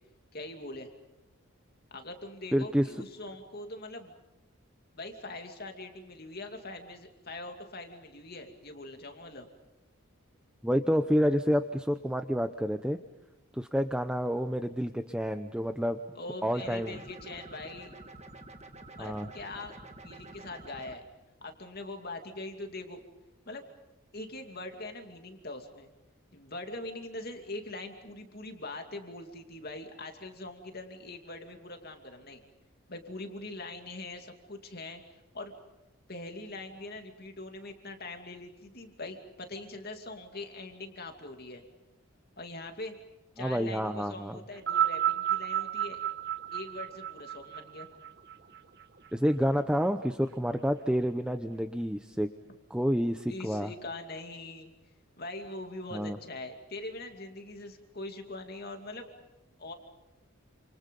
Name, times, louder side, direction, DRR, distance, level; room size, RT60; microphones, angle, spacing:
voice 1, 0.3-0.9 1.9-4.1 5.0-9.5 16.1-17.9 19.0-19.8 20.0-21.0 21.4-23.0 23.5-23.6 24.1-25.9 26.3-32.4 32.9-35.5 36.1-41.6 42.4-42.9 43.4-46.0 46.5-47.9 53.3-54.7 55.2-59.1 59.6-59.7, left 2 dB, 45° left, 5 dB, 2.6 m, -42 dB
voice 2, 2.5-2.9 10.6-13.0 13.5-16.0 16.4-17.0 19.0-19.3 43.4-44.4 49.1-52.3 52.7-53.7 55.9-56.2, equal, 5° right, 8 dB, 0.8 m, -29 dB
sound 1, 16.6-21.0, right 2 dB, 30° right, 1.7 m, -49 dB
sound 2, 44.5-49.1 50.0-50.1, right 11 dB, 50° right, 1.4 m, -31 dB
29.0 x 28.0 x 5.4 m, 1.0 s
head